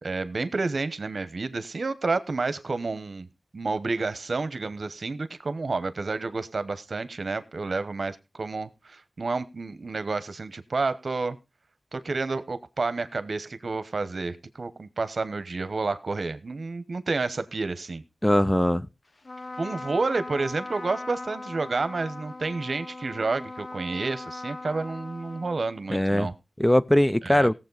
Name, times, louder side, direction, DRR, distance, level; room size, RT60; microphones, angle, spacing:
voice 1, 0.0-3.3 3.5-11.4 11.9-18.0 19.6-26.3 27.2-27.5, right 3 dB, 70° right, 0.9 m, -30 dB
voice 2, 18.2-18.9 25.9-26.3 26.6-27.5, left 1 dB, 15° left, 0.5 m, -21 dB
Trumpet, 19.2-26.0, left 2 dB, 50° left, 0.8 m, -40 dB
18.0 x 7.5 x 4.0 m
wide cardioid pair, 65°, 0 cm